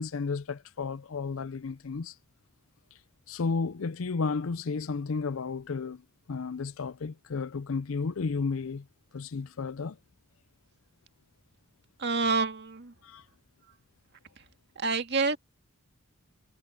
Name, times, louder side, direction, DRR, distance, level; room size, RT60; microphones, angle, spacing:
voice 1, 0.0-2.1 3.3-6.0 6.3-8.9 9.1-10.0 13.0-13.2, left 4 dB, 65° left, 0.5 m, -32 dB
voice 2, 12.0-12.9 14.8-15.4, right 4 dB, 50° right, 1.9 m, -27 dB
head